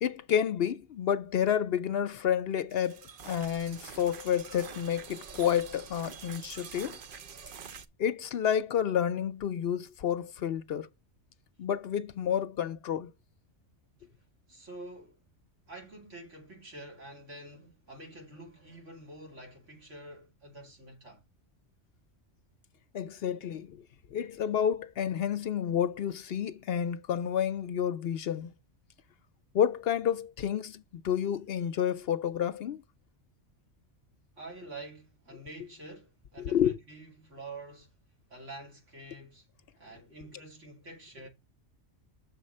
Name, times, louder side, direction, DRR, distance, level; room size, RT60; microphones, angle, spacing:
voice 1, 0.0-7.0 8.0-10.9 11.6-13.1 22.9-23.8 24.1-28.5 29.5-32.8 36.4-36.7, left 9 dB, 65° left, 0.7 m, -30 dB
sound 1, 2.7-7.8, right 6 dB, 55° right, 0.7 m, -46 dB
voice 2, 14.5-15.2 15.7-21.2 34.4-37.9 38.3-39.5 39.8-41.3, right 2 dB, 90° right, 2.9 m, -47 dB
6.7 x 4.2 x 6.5 m
omnidirectional pair, 1.2 m